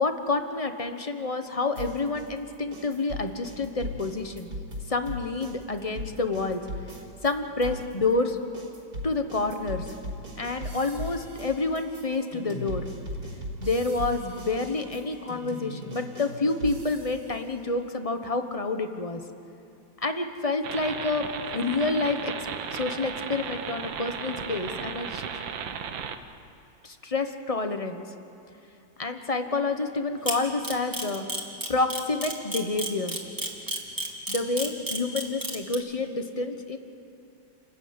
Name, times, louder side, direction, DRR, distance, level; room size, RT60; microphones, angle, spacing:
voice 1, 0.0-4.5 4.9-6.6 7.2-8.4 9.0-9.9 10.4-12.8 13.6-19.2 20.0-21.3 21.5-22.3 22.7-25.2 26.8-28.0 29.0-31.2 31.7-33.2 34.3-36.8, left 3 dB, 25° left, 7 dB, 0.9 m, -28 dB
sound 1, 1.8-7.3 7.6-17.4, equal, 60° right, 3.9 m, -38 dB
sound 2, 20.6-26.2, right 7 dB, 85° right, 1.8 m, -35 dB
Camera, 30.3-35.7, right 1 dB, 10° right, 2.6 m, -30 dB
28.5 x 15.0 x 9.7 m, 2.7 s
omnidirectional pair, 2.0 m